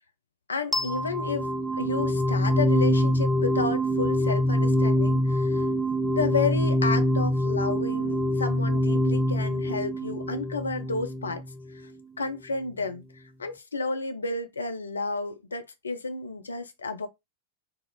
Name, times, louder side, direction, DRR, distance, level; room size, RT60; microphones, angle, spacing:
voice 1, 0.5-1.5 1.8-5.6 6.1-11.4 11.7-11.9 12.2-17.1, left 3 dB, 75° left, 0.7 m, -31 dB
sound 1, 0.7-11.7, left 1 dB, ahead, 0.5 m, -25 dB
4.4 x 2.8 x 3.4 m
figure-of-eight pair, 90°, 0 cm